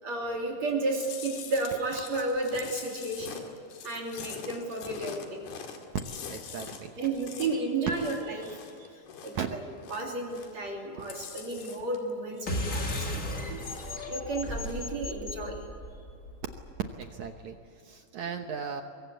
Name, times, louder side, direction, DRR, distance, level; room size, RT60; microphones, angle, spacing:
voice 1, 0.0-3.4 3.8-5.5 7.0-8.9 9.2-9.6 9.9-15.7, right 2 dB, 45° right, 0 dB, 3.8 m, -33 dB
Chewing mastication, 1.0-9.5 9.7-10.7 10.9-12.1 12.4-14.1 14.4-14.9, left 7 dB, 75° left, 4.1 m, -44 dB
voice 2, 6.3-6.9 9.3-9.6 17.0-18.8, right 6 dB, 70° right, 5 dB, 1.9 m, -37 dB
sound 1, 12.5-17.4, left 1 dB, 25° left, 1.9 m, -36 dB
23.5 x 22.5 x 8.3 m, 2.4 s
omnidirectional pair, 4.5 m